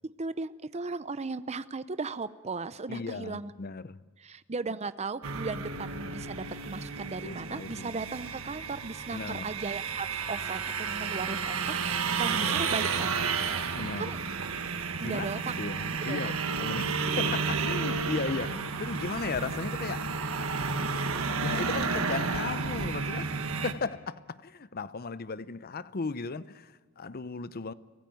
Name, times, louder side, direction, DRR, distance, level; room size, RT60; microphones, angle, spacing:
voice 1, 0.0-3.5 4.2-14.2 15.0-15.5 16.1-16.3, right 4 dB, 30° right, 0.6 m, -37 dB
voice 2, 2.9-4.0 7.1-8.0 9.1-9.5 12.5-12.6 13.7-14.1 15.0-16.9 17.2-20.1 21.4-27.7, left 4 dB, 45° left, 0.7 m, -36 dB
sound 1, 5.2-23.7, right 5 dB, 75° right, 1.6 m, -32 dB
24.5 x 15.0 x 9.4 m
head